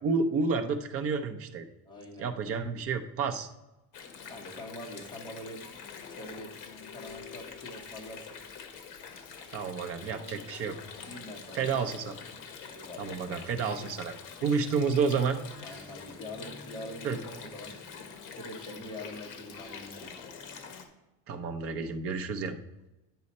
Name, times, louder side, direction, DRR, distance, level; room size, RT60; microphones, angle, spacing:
voice 1, 0.0-1.7 2.2-3.5 9.5-10.8 11.5-12.2 13.0-14.1 14.4-15.4 15.7-15.8 17.0-17.2 21.3-22.6, right 5 dB, 35° right, 6 dB, 0.6 m, -30 dB
voice 2, 1.8-2.3 4.3-5.6 6.1-6.5 6.9-8.4 10.1-10.4 11.1-11.8 12.7-13.5 15.6-20.1, left 1 dB, 10° left, -1 dB, 1.0 m, -44 dB
Water, 3.9-20.9, left 6 dB, 50° left, 1.2 m, -45 dB
9.6 x 5.5 x 4.2 m, 1.0 s
cardioid pair, 180°, 39 cm